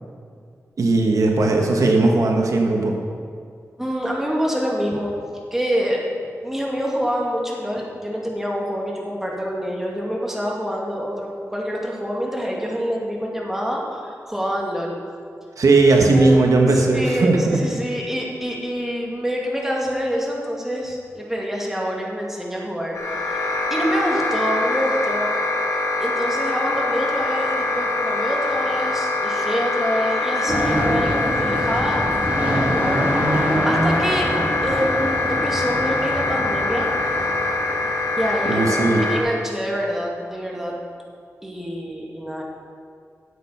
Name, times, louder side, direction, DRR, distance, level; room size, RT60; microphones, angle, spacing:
voice 1, 0.8-3.0 15.6-17.6 38.4-39.1, right 3 dB, 75° right, 1 dB, 1.4 m, -17 dB
voice 2, 3.8-5.1 5.5-6.0 6.4-15.0 15.9-16.4 16.7-25.3 26.0-32.1 32.3-34.4 34.6-36.9 38.2-40.7 41.4-42.4, equal, 5° right, -3 dB, 2.3 m, -26 dB
sound 1, 22.9-39.2, left 2 dB, 75° left, 2.5 m, -24 dB
sound 2, 30.5-38.5, equal, 25° right, 3.1 m, -25 dB
13.0 x 8.4 x 5.8 m, 2.3 s
wide cardioid pair, 95°, 6 cm